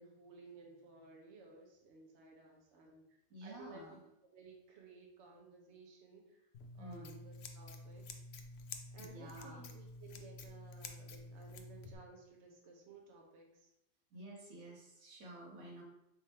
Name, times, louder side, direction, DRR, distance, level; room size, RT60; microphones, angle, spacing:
voice 1, 0.0-4.0 4.3-6.5 6.7-8.2 8.9-13.7, right 3 dB, 60° right, 0 dB, 1.0 m, -57 dB
voice 2, 3.3-4.0 6.8-7.2 9.0-9.6 14.1-15.8, right 1 dB, 90° right, -3 dB, 1.6 m, -51 dB
Scissors, 6.5-11.9, left 3 dB, 65° left, 0.7 m, -50 dB
3.7 x 3.5 x 4.1 m, 0.87 s
omnidirectional pair, 1.4 m